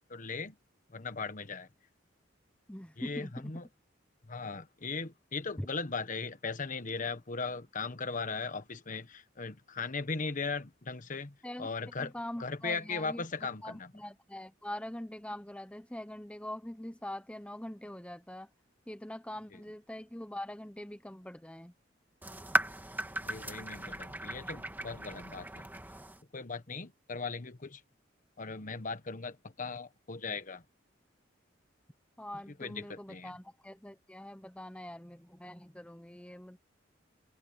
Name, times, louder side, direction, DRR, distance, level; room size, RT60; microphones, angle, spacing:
voice 1, 0.1-0.5 0.9-1.7 3.0-3.6 4.3-12.1 12.4-13.9 23.2-25.7 26.3-27.8 28.4-30.6 32.6-33.3, left 4 dB, 45° left, 1.2 m, -38 dB
voice 2, 2.7-3.5 5.6-5.7 11.4-11.7 12.0-13.2 13.6-18.5 18.9-21.7 32.2-36.6, left 1 dB, 5° left, 1.0 m, -43 dB
sound 1, 22.2-26.2, right 1 dB, 10° right, 2.1 m, -36 dB
head